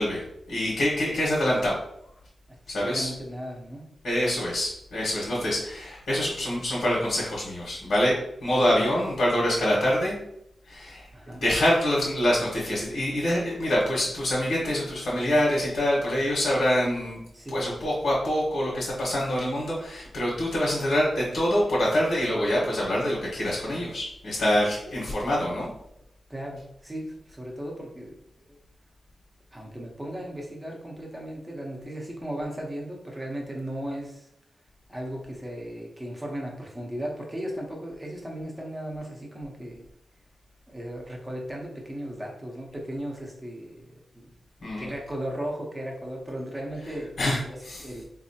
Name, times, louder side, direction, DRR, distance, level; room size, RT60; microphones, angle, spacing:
voice 1, 0.0-1.8 2.7-3.1 4.0-10.1 10.7-17.2 17.5-25.7 44.6-44.9 47.2-47.8, equal, 80° left, -6 dB, 1.3 m, -25 dB
voice 2, 2.5-3.8 11.1-11.4 17.3-17.6 26.3-28.2 28.5-28.6 29.5-34.3 34.9-39.9 40.7-43.8 44.1-44.3 44.8-48.0, equal, 15° right, -1 dB, 0.9 m, -36 dB
4.1 x 2.7 x 2.8 m, 0.75 s
wide cardioid pair, 140°, 0 cm